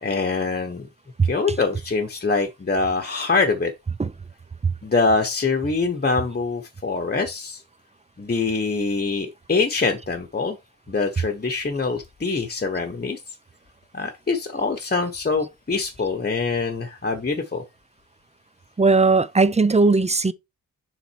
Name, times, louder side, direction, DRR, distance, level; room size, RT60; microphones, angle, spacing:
voice 1, 0.0-0.9 1.2-3.7 4.8-7.6 8.2-10.6 10.9-13.2 13.9-17.6, left 4 dB, 30° left, 1.0 m, -24 dB
voice 2, 18.8-20.3, right 3 dB, 20° right, 0.4 m, -18 dB
7.1 x 3.9 x 4.6 m
wide cardioid pair, 110°, 35 cm